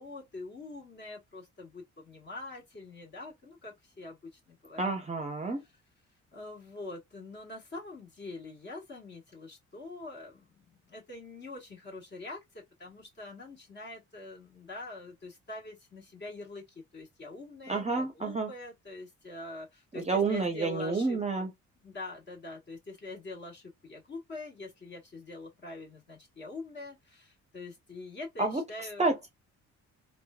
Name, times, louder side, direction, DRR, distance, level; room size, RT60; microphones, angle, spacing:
voice 1, 0.0-4.9 6.3-21.5 21.8-29.1, left 2 dB, 35° left, 1.5 m, -44 dB
voice 2, 4.8-5.6 17.7-18.5 19.9-21.5 28.4-28.6 29.0-29.3, right 3 dB, 20° right, 0.7 m, -29 dB
3.0 x 2.2 x 2.2 m
cardioid pair, 90°, 30 cm